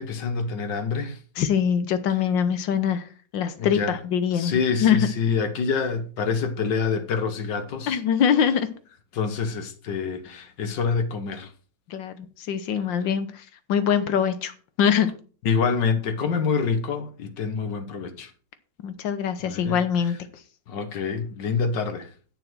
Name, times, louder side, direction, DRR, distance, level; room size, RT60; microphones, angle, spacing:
voice 1, 0.0-1.2 3.6-4.0 4.3-8.0 9.1-11.5 15.5-18.3 19.4-20.1 20.7-22.1, left 5 dB, 70° left, 1.9 m, -26 dB
voice 2, 1.4-3.0 3.3-5.0 7.9-8.7 11.9-13.4 13.7-14.5 14.8-15.1 18.8-20.3, left 8 dB, 90° left, 1.8 m, -23 dB
9.4 x 6.6 x 6.1 m
omnidirectional pair, 2.0 m